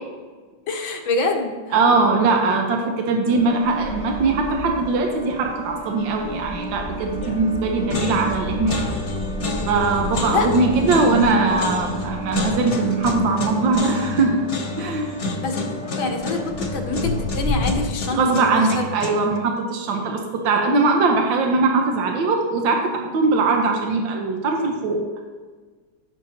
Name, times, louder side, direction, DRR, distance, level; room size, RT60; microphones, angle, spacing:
voice 1, 0.7-1.7 10.3-10.7 15.4-18.8, left 3 dB, 85° left, 2 dB, 2.0 m, -26 dB
voice 2, 1.7-8.8 9.7-14.4 14.8-15.2 18.1-25.0, right 3 dB, 75° right, 2 dB, 1.7 m, -21 dB
sound 1, 3.3-17.9, left 1 dB, 35° right, 1.3 m, -32 dB
sound 2, 7.2-7.6 7.9-19.4, left 3 dB, 45° left, 1.3 m, -29 dB
16.5 x 6.5 x 2.8 m, 1.4 s
omnidirectional pair, 2.1 m